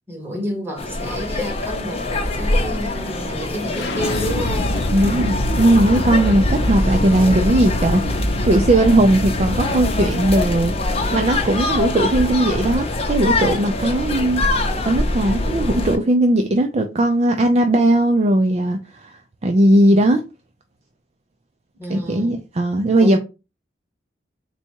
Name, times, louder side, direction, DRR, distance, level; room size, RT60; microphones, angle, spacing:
voice 1, 0.1-2.1 2.3-4.7 6.8-7.9 15.4-16.0 21.8-22.4 23.0-23.2, equal, 15° right, 1.5 m, -31 dB
sound 1, 0.8-16.0, left 2 dB, 35° left, 0.7 m, -24 dB
sound 2, 3.7-15.6, left 1 dB, 80° left, 0.7 m, -26 dB
voice 2, 4.9-8.0 8.5-10.7 11.1-14.4 14.8-20.2 21.9-23.2, right 1 dB, 35° right, 0.4 m, -18 dB
4.1 x 2.3 x 4.4 m
head